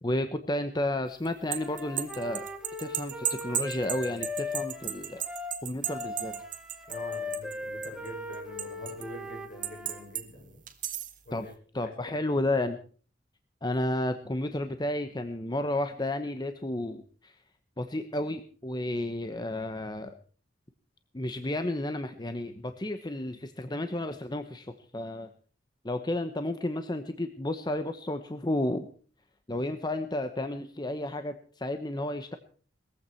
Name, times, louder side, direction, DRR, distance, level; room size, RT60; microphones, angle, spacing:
voice 1, 0.0-2.5 2.8-5.2 5.6-6.4 11.3-11.5 11.7-12.8 13.6-17.4 17.8-20.1 21.1-25.3 25.8-28.9 29.5-32.4, left 1 dB, 25° left, 8 dB, 0.9 m, -32 dB
sound 1, 1.3-7.6 7.8-9.0 9.6-10.2 10.7-11.2, right 10 dB, 45° right, 1.8 m, -34 dB
Wind instrument woodwind instrument, 1.5-10.0, left 2 dB, 5° right, 2.9 m, -39 dB
voice 2, 6.9-10.6 11.2-11.5 11.8-12.2, left 1 dB, 50° left, 2 dB, 6.9 m, -45 dB
20.5 x 15.0 x 4.5 m, 0.43 s
head